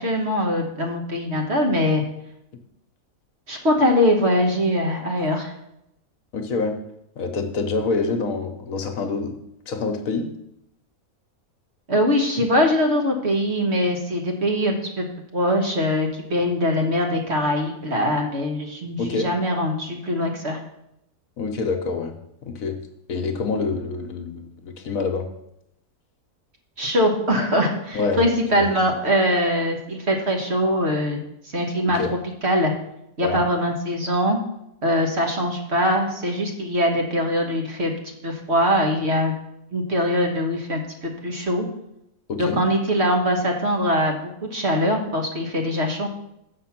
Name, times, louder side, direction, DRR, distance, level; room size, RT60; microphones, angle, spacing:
voice 1, 0.0-2.0 3.5-5.5 11.9-15.1 15.3-20.6 26.8-31.2 31.4-32.7 33.2-34.4 34.8-39.3 39.7-41.6 42.4-46.1, equal, 50° right, 2 dB, 1.5 m, -22 dB
voice 2, 6.3-6.8 7.2-9.3 9.7-10.3 19.0-19.3 21.4-22.1 22.4-22.8 23.1-25.3 27.9-28.2 28.6-28.7 31.9-32.1 33.2-33.4 42.3-42.7, left 4 dB, 70° left, 6 dB, 1.3 m, -26 dB
7.2 x 6.1 x 5.9 m, 0.80 s
omnidirectional pair, 1.6 m